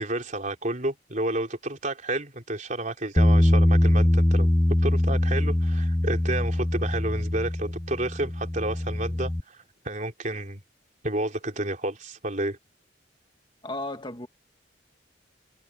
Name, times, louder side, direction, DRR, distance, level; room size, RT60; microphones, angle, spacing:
voice 1, 0.0-4.5 4.8-10.6 11.0-12.6, right 1 dB, 40° right, 4.0 m, -31 dB
Bass guitar, 3.2-9.4, left 1 dB, 10° left, 0.4 m, -22 dB
voice 2, 13.6-14.3, left 2 dB, 25° left, 2.0 m, -34 dB
head